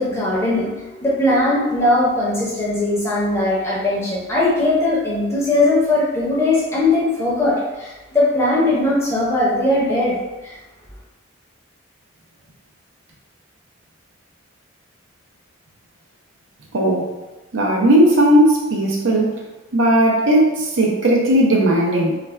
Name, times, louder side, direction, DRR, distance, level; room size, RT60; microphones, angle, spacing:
voice 1, 0.0-10.2 10.4-10.5, left 2 dB, 15° left, -7 dB, 0.6 m, -19 dB
voice 2, 16.7-17.1 17.5-19.4 19.7-22.1, right 1 dB, 75° right, -2 dB, 0.6 m, -16 dB
2.4 x 2.2 x 3.2 m, 1.1 s
head